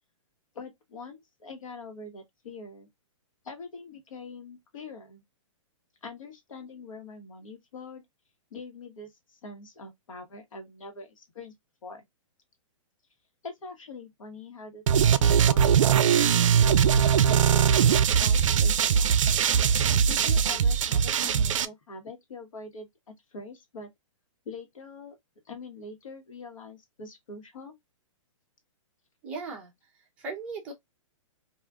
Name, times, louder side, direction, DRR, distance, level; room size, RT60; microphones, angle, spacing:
voice 1, 0.5-2.9 3.4-5.2 6.0-8.0 8.5-11.5 11.8-12.0 13.4-16.7 17.2-19.3 20.0-23.9 24.4-25.2 25.4-27.7, left 3 dB, 75° left, 1.2 m, -43 dB
sound 1, 14.9-21.7, right 8 dB, 70° right, 0.4 m, -21 dB
voice 2, 29.2-29.7 30.2-30.7, right 4 dB, 10° right, 0.4 m, -37 dB
3.5 x 2.4 x 2.4 m
hypercardioid pair, 175°, 17 cm